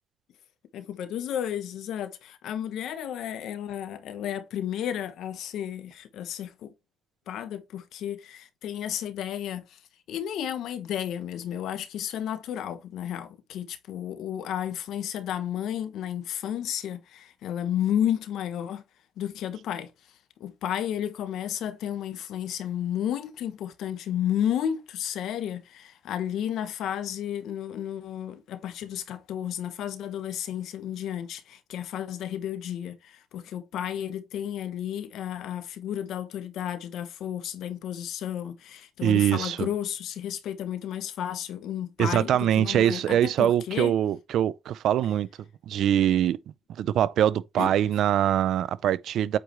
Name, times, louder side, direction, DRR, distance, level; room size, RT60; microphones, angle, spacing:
voice 1, 0.7-6.7 7.3-9.8 10.1-18.8 19.2-19.9 20.4-43.9 47.6-47.7, left 10 dB, 80° left, 1.1 m, -32 dB
voice 2, 39.0-39.7 42.0-45.3 45.7-46.4 46.8-49.4, right 10 dB, 75° right, 0.5 m, -23 dB
8.5 x 4.8 x 3.1 m
cardioid pair, 90°, 0 cm